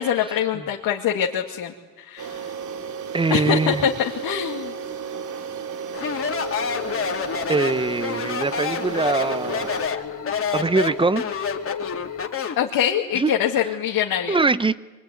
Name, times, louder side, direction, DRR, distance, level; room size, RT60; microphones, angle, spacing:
voice 1, 0.0-2.5 3.3-4.7 12.6-14.4, left 9 dB, 70° left, -1 dB, 2.5 m, -24 dB
sound 1, 2.2-9.9, right 6 dB, 55° right, 2.6 m, -33 dB
voice 2, 3.1-3.9 7.5-9.8 10.5-11.2 13.1-13.6 14.3-14.8, right 3 dB, 15° right, 15 dB, 0.9 m, -23 dB
sound 2, 5.9-12.3, left 7 dB, 55° left, 3.5 m, -36 dB
Speech, 5.9-12.7, left 6 dB, 35° left, 2.8 m, -28 dB
24.0 x 23.5 x 9.6 m, 1.3 s
cardioid pair, 110°, 35 cm